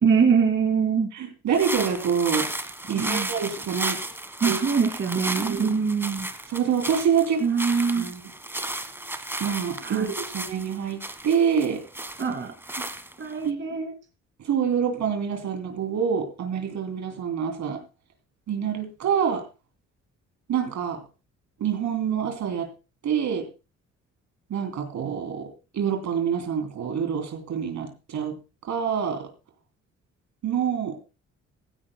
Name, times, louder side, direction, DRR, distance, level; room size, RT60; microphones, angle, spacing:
voice 1, 0.0-1.1 2.9-3.3 4.4-6.3 7.4-8.1 9.8-10.1 12.2-12.9 13.2-13.9, right 6 dB, 40° right, 4 dB, 2.5 m, -24 dB
voice 2, 1.1-2.5 2.9-4.0 4.4-4.6 5.4-5.7 6.5-7.4 7.9-8.2 9.4-11.8 13.4-13.6 14.4-17.8 18.5-19.4 20.5-21.0 21.6-22.7 23.0-23.5 24.5-28.4 28.7-29.3 30.4-31.0, right 7 dB, 70° right, 6 dB, 3.1 m, -26 dB
sound 1, 1.5-13.5, right 1 dB, 5° right, 1.4 m, -33 dB
16.0 x 15.5 x 2.2 m, 0.29 s
cardioid pair, 90°, 30 cm